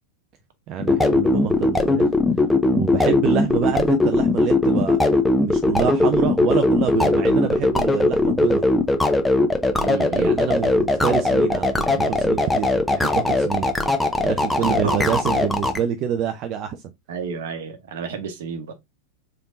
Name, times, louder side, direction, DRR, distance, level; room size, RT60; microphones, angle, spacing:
voice 1, 0.7-2.1 2.7-5.0 5.4-8.6 10.1-13.7 14.2-16.9, right 9 dB, 35° right, 0.4 m, -26 dB
sound 1, 0.8-15.8, left 2 dB, 5° left, 0.6 m, -19 dB
voice 2, 9.8-10.4 14.5-15.1 17.1-18.7, right 6 dB, 55° right, 0.9 m, -31 dB
3.9 x 3.5 x 2.5 m
figure-of-eight pair, 90°, 0 cm